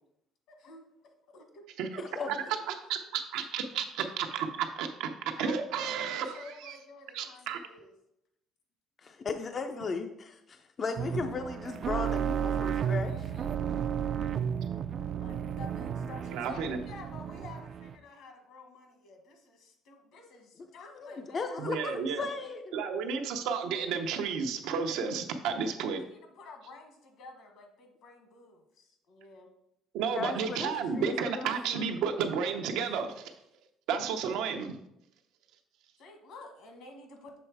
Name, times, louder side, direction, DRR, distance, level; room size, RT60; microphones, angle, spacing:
voice 1, 0.5-0.8 1.3-1.6 2.0-2.1 5.3-7.9 13.0-13.6 15.2-21.7 26.0-29.5 36.0-37.4, left 3 dB, 65° left, 4 dB, 1.3 m, -50 dB
voice 2, 2.0-2.3 9.0-13.2 20.9-22.8 30.1-32.0, left 4 dB, 35° left, 7 dB, 0.4 m, -36 dB
voice 3, 2.9-6.3 6.6-6.7 7.1-7.6 16.3-16.8 21.6-22.3 22.7-26.0 29.9-33.3 33.9-34.8, right 6 dB, 85° right, 5 dB, 0.7 m, -32 dB
sound 1, 11.0-18.0, right 8 dB, 45° right, 0.3 m, -33 dB
6.9 x 3.3 x 4.6 m, 0.79 s
cardioid pair, 140°, 0 cm